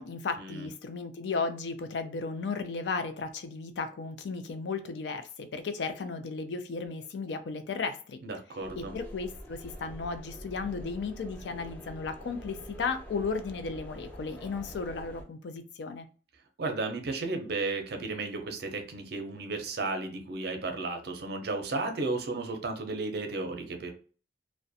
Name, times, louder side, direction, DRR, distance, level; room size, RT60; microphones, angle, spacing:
voice 1, 0.0-8.2 8.8-16.1, left 4 dB, 70° left, 0.4 m, -35 dB
voice 2, 8.2-8.9 16.6-23.9, right 3 dB, 60° right, 0.5 m, -34 dB
sound 1, 8.6-15.2, equal, 10° left, 0.5 m, -46 dB
2.4 x 2.1 x 2.6 m
head